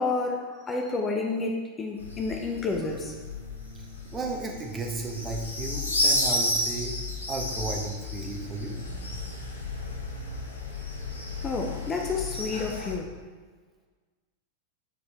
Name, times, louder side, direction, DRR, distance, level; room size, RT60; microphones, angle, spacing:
voice 1, 0.0-3.1 11.4-13.1, left 3 dB, 20° left, 2 dB, 0.8 m, -30 dB
sound 1, 2.0-12.9, left 2 dB, 80° left, 1.1 m, -32 dB
voice 2, 4.1-7.0 7.3-8.8, right 3 dB, 20° right, 1 dB, 1.1 m, -34 dB
7.2 x 4.8 x 4.2 m, 1.4 s
figure-of-eight pair, 90°, 0 cm